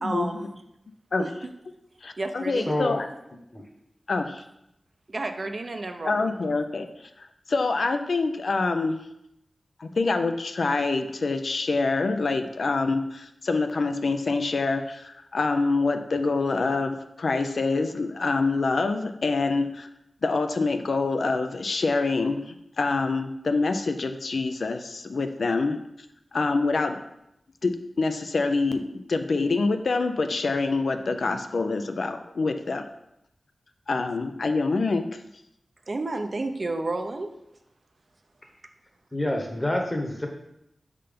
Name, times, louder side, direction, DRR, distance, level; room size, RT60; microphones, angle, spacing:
voice 1, 0.0-0.6 1.2-1.5 2.2-2.7 5.1-6.4 35.9-37.3, right 2 dB, 50° right, 6 dB, 0.5 m, -31 dB
voice 2, 2.0-3.1 4.1-4.4 6.0-9.1 9.8-19.9 20.2-25.8 26.3-27.0 27.6-32.8 33.9-35.1, left 3 dB, 75° left, 7 dB, 0.4 m, -26 dB
voice 3, 2.7-3.0 3.5-3.6 39.1-40.3, left 1 dB, 20° left, 3 dB, 1.0 m, -27 dB
5.6 x 3.7 x 5.1 m, 0.83 s
wide cardioid pair, 95°, 0 cm